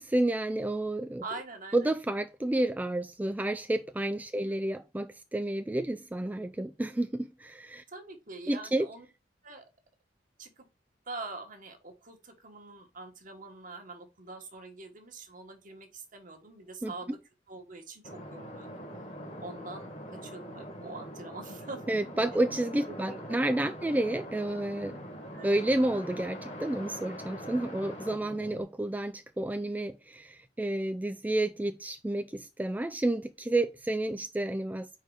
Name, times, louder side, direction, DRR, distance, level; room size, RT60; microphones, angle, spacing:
voice 1, 0.0-1.2 1.7-7.8 8.5-8.9 16.8-17.2 21.9-25.0 25.4-34.9, right 1 dB, 10° right, 0.3 m, -30 dB
voice 2, 1.2-1.9 4.4-4.6 7.9-9.1 9.4-9.6 10.4-10.6 11.1-17.2 17.5-18.9 19.4-22.0 23.0-23.4 25.3-25.5, right 3 dB, 50° right, 1.5 m, -44 dB
sound 1, 18.0-28.6, equal, 40° left, 1.7 m, -43 dB
4.8 x 4.5 x 4.8 m
head